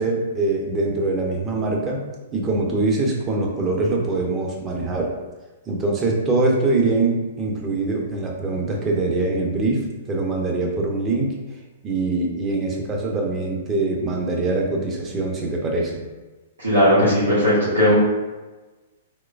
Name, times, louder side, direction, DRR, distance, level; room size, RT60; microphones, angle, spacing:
voice 1, 0.0-2.1 2.3-5.1 5.7-11.4 11.8-16.0, right 2 dB, 20° right, 0 dB, 0.7 m, -23 dB
voice 2, 16.6-17.9, equal, 85° right, -12 dB, 1.3 m, -17 dB
3.6 x 3.0 x 2.4 m, 1.2 s
figure-of-eight pair, 110°, 0 cm